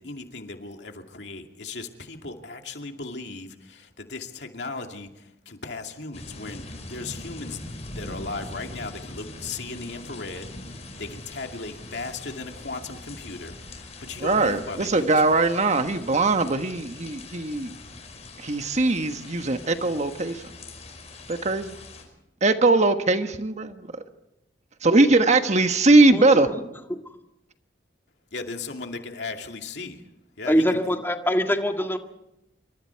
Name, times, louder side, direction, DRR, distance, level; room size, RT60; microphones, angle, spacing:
voice 1, 0.0-7.6 7.9-10.5 11.0-15.0 28.3-30.0 30.4-30.9, left 3 dB, 70° left, 2.5 m, -37 dB
sound 1, 6.1-22.0, left 2 dB, 40° left, 5.0 m, -42 dB
voice 2, 14.2-17.8 18.4-20.4 21.3-21.7 22.4-23.9 24.8-26.5, right 2 dB, 40° right, 1.4 m, -20 dB
voice 3, 26.1-26.6 26.9-27.2 30.5-32.0, equal, 15° left, 1.7 m, -24 dB
27.0 x 25.0 x 4.7 m
head